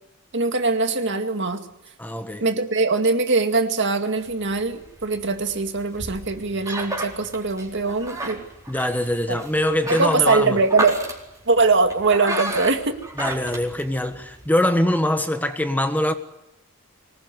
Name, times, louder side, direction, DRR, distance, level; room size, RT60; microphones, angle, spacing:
voice 1, 0.3-1.7 2.4-8.4 9.3-9.4 9.9-11.0 11.5-13.0, right 3 dB, 60° right, 2.2 m, -22 dB
voice 2, 2.0-2.4 8.7-10.6 13.2-16.1, left 1 dB, 10° left, 1.5 m, -23 dB
sound 1, 4.2-14.5, right 2 dB, 15° right, 4.4 m, -33 dB
24.5 x 20.0 x 9.8 m
head